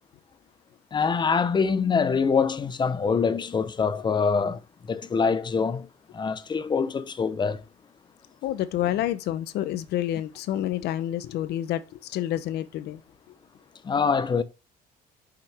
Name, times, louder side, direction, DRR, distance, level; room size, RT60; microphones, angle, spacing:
voice 1, 0.9-4.6 4.9-5.9 6.1-7.6 13.8-14.4, left 5 dB, 25° left, 0.6 m, -24 dB
voice 2, 8.4-13.0, left 12 dB, 75° left, 0.7 m, -28 dB
6.0 x 5.7 x 3.4 m
cardioid pair, 110°, 17 cm